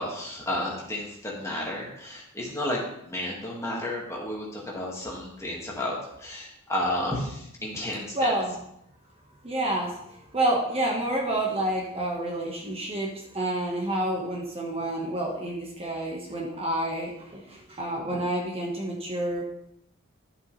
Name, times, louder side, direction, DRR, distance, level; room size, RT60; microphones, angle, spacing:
voice 1, 0.0-8.3, left 1 dB, 15° left, -3 dB, 1.9 m, -32 dB
voice 2, 8.1-8.5 9.4-9.9 10.3-19.4, right 1 dB, 25° right, -1 dB, 1.4 m, -29 dB
11.5 x 7.1 x 3.3 m, 0.77 s
head